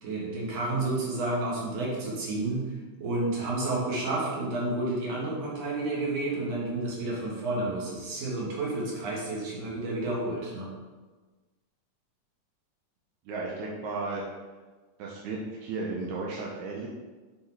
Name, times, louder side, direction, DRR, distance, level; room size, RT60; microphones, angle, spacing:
voice 1, 0.0-2.7 3.0-10.7, right 2 dB, 60° right, -4 dB, 2.6 m, -30 dB
voice 2, 13.3-14.2 15.0-16.9, right 3 dB, 90° right, -3 dB, 2.2 m, -34 dB
6.5 x 3.9 x 4.6 m, 1.3 s
omnidirectional pair, 3.4 m